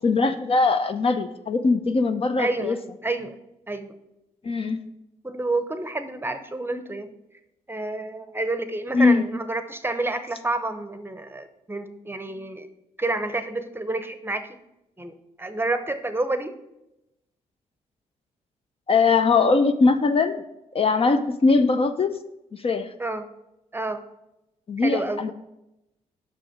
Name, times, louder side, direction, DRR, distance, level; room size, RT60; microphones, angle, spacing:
voice 1, 0.0-2.8 4.4-4.8 8.9-9.2 18.9-20.4 20.7-22.2 22.5-22.9 24.7-25.3, left 4 dB, 40° left, 9 dB, 0.5 m, -21 dB
voice 2, 2.4-3.4 3.7-3.9 5.2-7.1 7.7-12.7 13.0-14.5 15.0-16.5 23.0-23.3 23.7-24.0 24.8-25.2, right 2 dB, 15° right, 9 dB, 0.8 m, -29 dB
5.9 x 4.9 x 4.9 m, 0.88 s
supercardioid pair, 55°, 15 cm